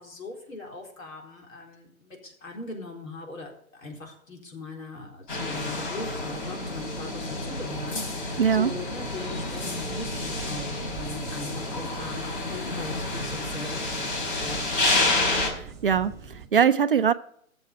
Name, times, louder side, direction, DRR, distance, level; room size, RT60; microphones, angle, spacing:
voice 1, 0.0-14.9, left 2 dB, 70° left, 1 dB, 4.1 m, -40 dB
sound 1, 5.3-15.5, left 2 dB, 35° left, 4.1 m, -29 dB
voice 2, 8.4-8.7 15.6-17.1, right 7 dB, 40° right, 11 dB, 0.5 m, -22 dB
sound 2, 8.9-16.5, right 6 dB, 10° right, 1.3 m, -44 dB
13.5 x 7.1 x 5.8 m, 0.67 s
figure-of-eight pair, 140°, 42 cm